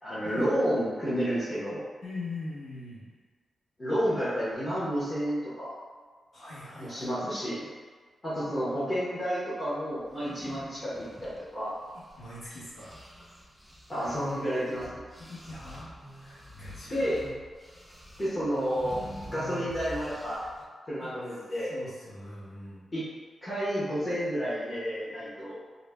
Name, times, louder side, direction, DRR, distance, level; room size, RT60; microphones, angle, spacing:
voice 1, 0.0-1.8 3.8-5.8 6.8-7.7 8.2-11.7 13.9-15.0 16.9-17.2 18.2-19.0 19.3-20.4 20.9-21.7 22.9-23.1 23.4-25.6, equal, 25° left, -11 dB, 0.7 m, -30 dB
voice 2, 2.0-3.1 6.3-7.1 12.2-13.0 15.2-17.1 21.0-21.2 21.6-22.8, left 2 dB, 50° left, -10 dB, 1.0 m, -42 dB
sound 1, 10.1-12.4 12.8-20.6, equal, ahead, 0.3 m, -46 dB
2.5 x 2.0 x 3.2 m, 1.5 s
wide cardioid pair, 135°, 0 cm